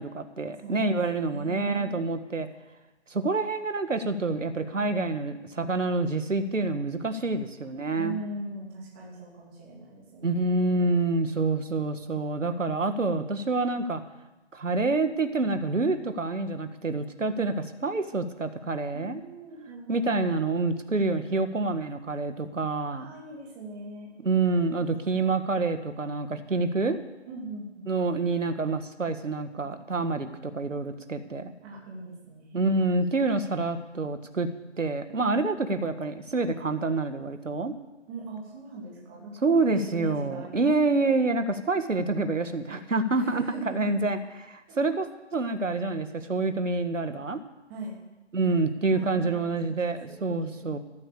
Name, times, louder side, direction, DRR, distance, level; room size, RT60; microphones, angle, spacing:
voice 1, 0.0-2.5 3.1-8.2 10.2-14.0 14.5-17.5 17.8-19.2 19.9-23.1 24.2-27.0 27.9-31.5 32.5-34.5 34.8-37.7 39.4-47.4 48.3-50.8, right 3 dB, 85° right, 8 dB, 2.0 m, -27 dB
voice 2, 0.6-2.0 7.9-10.9 17.3-17.5 18.9-20.2 22.9-24.2 25.1-25.3 27.3-28.2 31.6-32.7 33.2-33.3 38.1-39.3 39.7-41.0 43.1-44.0 44.7-44.8 47.7-48.0 48.9-50.7, right 2 dB, 10° right, -4 dB, 2.8 m, -41 dB
14.0 x 13.5 x 7.0 m, 1.0 s
figure-of-eight pair, 170°, 37 cm